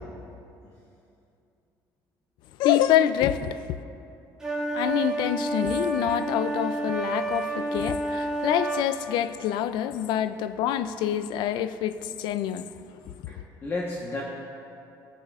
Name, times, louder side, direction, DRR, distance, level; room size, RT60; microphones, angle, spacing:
voice 1, 2.6-3.8 4.7-12.7 13.0-13.1, left 11 dB, 75° left, 13 dB, 0.4 m, -26 dB
sound 1, 4.4-8.9, right 2 dB, 10° right, 2.2 m, -29 dB
voice 2, 13.3-14.2, left 2 dB, 35° left, -4 dB, 1.1 m, -32 dB
16.0 x 8.4 x 2.4 m, 2.6 s
cardioid pair, 125°, 8 cm